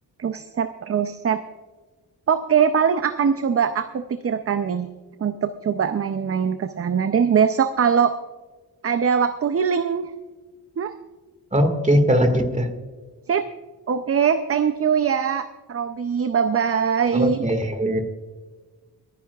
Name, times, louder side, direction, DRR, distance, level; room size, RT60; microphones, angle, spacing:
voice 1, 0.2-1.4 2.3-4.9 5.2-8.1 8.8-10.1 10.8-10.9 13.3-13.4 13.9-17.4, right 7 dB, 35° right, 9 dB, 0.5 m, -22 dB
voice 2, 11.5-12.7 17.1-18.0, equal, 20° right, 7 dB, 1.9 m, -20 dB
29.5 x 10.0 x 2.4 m, 1.3 s
wide cardioid pair, 105°, 40 cm